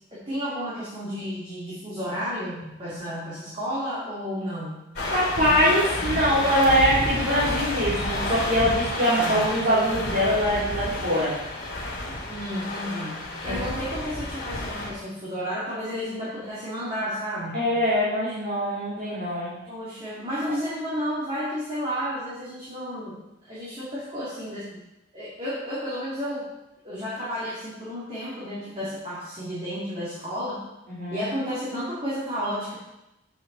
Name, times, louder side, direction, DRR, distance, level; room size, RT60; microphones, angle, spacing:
voice 1, 0.1-4.8 9.1-9.5 12.3-17.7 19.7-24.8 25.1-26.5 26.8-30.6 31.1-32.8, equal, 25° right, -9 dB, 2.4 m, -32 dB
sound 1, 5.0-14.9, left 1 dB, 50° left, 2.6 m, -30 dB
voice 2, 5.1-11.3 13.4-13.6 17.5-19.5 30.9-31.2, equal, 45° right, -11 dB, 3.3 m, -23 dB
8.7 x 8.0 x 4.0 m, 0.93 s
head